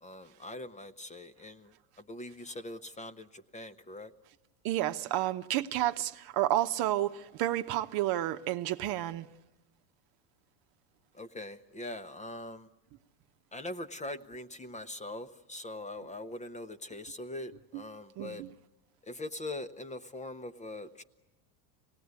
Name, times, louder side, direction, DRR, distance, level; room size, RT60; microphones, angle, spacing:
voice 1, 0.0-4.1 11.1-12.7 13.5-18.5 19.0-21.0, left 2 dB, 15° left, 0.8 m, -42 dB
voice 2, 4.6-9.3 18.2-18.5, right 14 dB, 50° right, 1.0 m, -30 dB
25.5 x 18.5 x 9.6 m
supercardioid pair, 110°, 46 cm